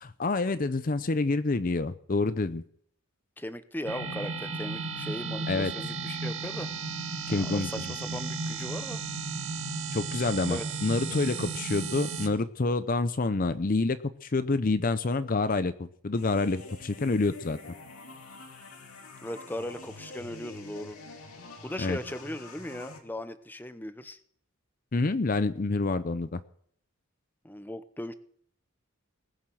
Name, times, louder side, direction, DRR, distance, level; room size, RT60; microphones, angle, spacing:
voice 1, 0.0-2.6 5.5-5.7 7.3-7.7 9.9-17.6 21.8-22.0 24.9-26.4, left 3 dB, 40° left, 13 dB, 0.6 m, -27 dB
voice 2, 3.4-6.7 7.3-9.0 10.5-10.7 19.2-21.0 21.6-24.2 27.4-28.1, left 1 dB, 10° left, 11 dB, 0.8 m, -38 dB
sound 1, 3.9-12.3, right 3 dB, 60° right, 2.0 m, -34 dB
sound 2, 16.1-23.0, left 2 dB, 85° left, 2.6 m, -46 dB
20.0 x 7.4 x 7.7 m, 0.64 s
head